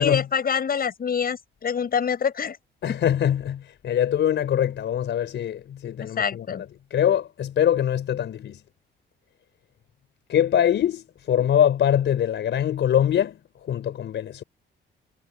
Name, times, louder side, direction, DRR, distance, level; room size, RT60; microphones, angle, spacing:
voice 1, 0.0-2.6 6.0-6.6, left 7 dB, 50° left, 7.7 m, -25 dB
voice 2, 2.8-8.6 10.3-13.4 13.7-14.4, left 10 dB, 65° left, 4.6 m, -23 dB
cardioid pair, 90°, 20 cm